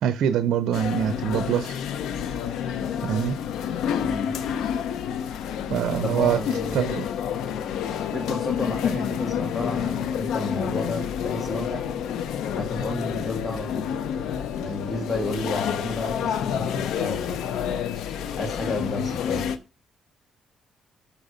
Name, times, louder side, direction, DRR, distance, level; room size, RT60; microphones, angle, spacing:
voice 1, 0.0-1.8 3.0-3.3 5.7-6.4 6.7-7.1, right 9 dB, 75° right, 0.6 m, -24 dB
sound 1, 0.7-19.6, left 8 dB, 85° left, 0.7 m, -29 dB
voice 2, 6.0-6.8 8.1-11.9 12.5-13.9 14.6-17.4 18.4-19.5, left 1 dB, 25° left, 1.8 m, -32 dB
6.6 x 5.8 x 5.1 m
cardioid pair, 90°, 0 cm